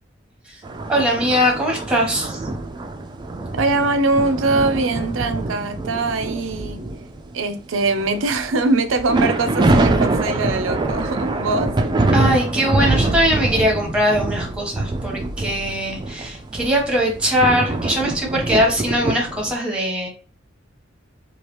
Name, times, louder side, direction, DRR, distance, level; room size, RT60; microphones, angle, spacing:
sound 1, 0.6-7.3 7.8-19.6, right 2 dB, 25° right, 0.3 m, -24 dB
voice 1, 0.9-2.4 12.1-20.1, equal, 5° right, 0 dB, 0.9 m, -21 dB
voice 2, 3.6-6.8 7.3-11.8, right 3 dB, 80° right, 10 dB, 0.5 m, -22 dB
3.1 x 2.4 x 2.9 m, 0.36 s
head